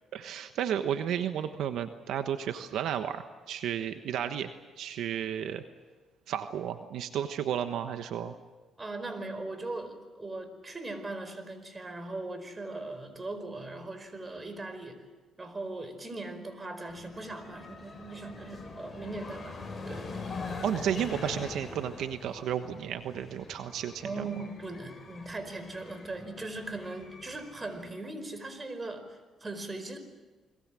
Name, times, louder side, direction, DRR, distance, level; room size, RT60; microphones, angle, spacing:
voice 1, 0.1-4.5 4.8-5.6 6.3-8.3 20.6-24.3, right 9 dB, 80° right, 8 dB, 1.2 m, -33 dB
voice 2, 8.8-15.1 15.4-20.1 24.0-30.0, right 2 dB, 25° right, 10 dB, 4.8 m, -39 dB
sound 1, 16.9-27.9, left 3 dB, 30° left, 7.4 m, -43 dB
30.0 x 22.0 x 7.7 m, 1.3 s
cardioid pair, 90°, 0 cm